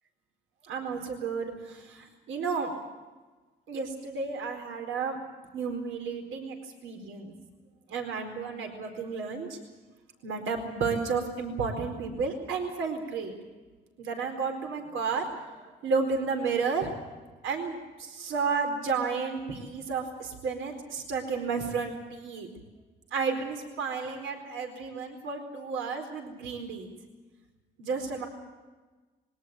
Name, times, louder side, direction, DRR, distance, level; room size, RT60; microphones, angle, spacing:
voice 1, 0.7-2.7 3.7-5.2 5.5-6.5 6.8-7.3 7.9-9.6 10.2-13.3 14.0-17.0 17.4-22.5 23.1-26.9 27.8-28.3, right 5 dB, 80° right, 3 dB, 4.4 m, -32 dB
22.0 x 18.0 x 9.0 m, 1.3 s
cardioid pair, 90°, 20 cm